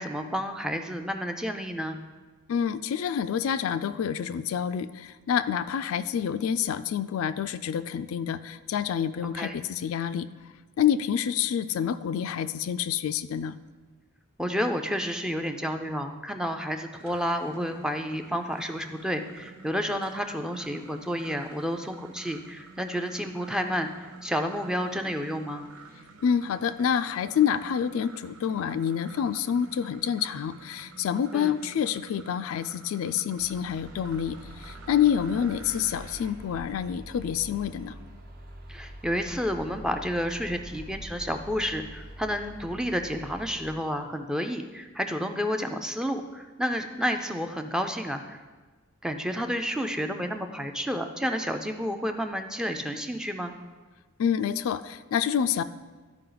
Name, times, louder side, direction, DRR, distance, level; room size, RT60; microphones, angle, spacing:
voice 1, 0.0-2.0 9.3-9.6 14.4-25.7 31.3-31.5 38.7-48.4 49.0-53.5, equal, 5° right, 6 dB, 0.4 m, -30 dB
voice 2, 2.5-10.3 10.8-13.6 26.2-37.9 54.2-55.6, left 8 dB, 75° left, 12 dB, 0.3 m, -27 dB
sound 1, 16.7-36.3, right 4 dB, 90° right, 0.8 m, -50 dB
sound 2, 33.4-43.8, equal, 45° right, 1.0 m, -45 dB
12.5 x 4.9 x 3.9 m, 1.3 s
head